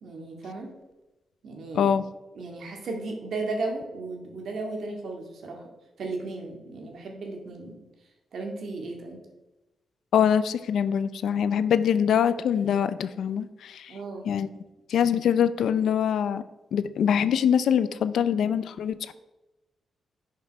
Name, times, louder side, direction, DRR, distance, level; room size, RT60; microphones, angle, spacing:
voice 1, 0.0-0.7 1.4-1.9 2.4-5.7 6.0-7.8 8.3-9.2 13.9-14.3 18.9-19.1, right 3 dB, 65° right, 2 dB, 2.1 m, -35 dB
voice 2, 10.1-14.0 14.3-14.5 14.9-16.4 16.7-19.1, left 8 dB, 85° left, 14 dB, 0.5 m, -24 dB
10.5 x 5.8 x 4.7 m, 1.0 s
wide cardioid pair, 130°, 0 cm